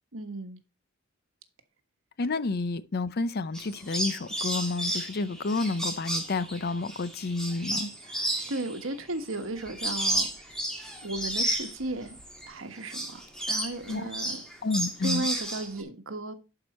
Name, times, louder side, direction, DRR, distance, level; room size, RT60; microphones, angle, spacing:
voice 1, 0.1-0.6 8.0-10.3 11.0-12.2 12.5-14.4 15.0-16.3, right 2 dB, 75° right, 1.4 m, -35 dB
voice 2, 2.2-7.9 13.9-14.0 14.6-15.2, left 3 dB, 50° left, 0.6 m, -30 dB
sound 1, 3.5-12.5 12.8-15.8, right 1 dB, 5° left, 2.0 m, -32 dB
11.5 x 4.9 x 4.2 m
head